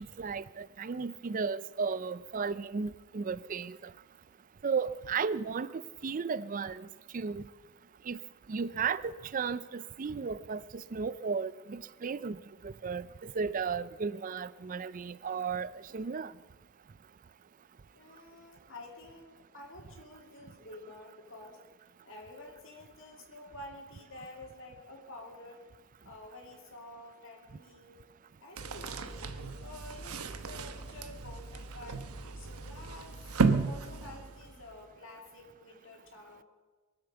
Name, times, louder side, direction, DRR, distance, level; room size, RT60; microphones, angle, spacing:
voice 1, 0.0-3.9 4.6-6.9 7.1-7.5 8.0-8.2 8.5-12.4 12.6-16.3, right 5 dB, 40° right, 0.4 m, -34 dB
voice 2, 17.9-21.6 22.0-25.6 26.0-28.0 28.4-32.0 32.4-36.4, left 2 dB, 60° left, 2.6 m, -50 dB
sound 1, 28.6-34.7, right 4 dB, 90° right, 1.1 m, -34 dB
22.5 x 8.1 x 6.9 m
head